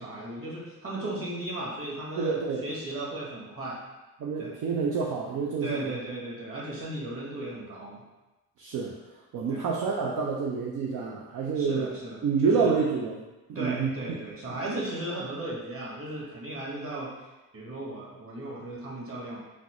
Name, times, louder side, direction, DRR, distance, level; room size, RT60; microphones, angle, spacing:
voice 1, 0.0-3.8 4.4-4.5 5.6-8.0 9.5-9.7 11.6-12.7 13.5-17.1 17.5-19.4, right 1 dB, 35° right, -4 dB, 1.3 m, -36 dB
voice 2, 2.2-2.7 4.2-6.0 8.6-8.9 9.3-11.9 12.2-13.2 13.5-13.9, right 5 dB, 50° right, -1 dB, 0.6 m, -28 dB
4.1 x 2.1 x 2.9 m, 1.1 s
supercardioid pair, 65°, 41 cm